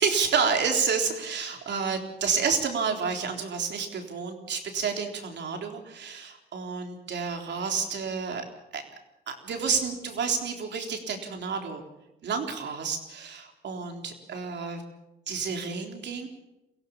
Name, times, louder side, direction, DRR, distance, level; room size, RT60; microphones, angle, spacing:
voice 1, 0.0-8.4 8.7-8.8 9.3-11.8 12.2-14.8 15.3-16.3, right 5 dB, 60° right, 3 dB, 3.8 m, -29 dB
23.0 x 16.5 x 7.3 m, 0.93 s
cardioid pair, 90°, 20 cm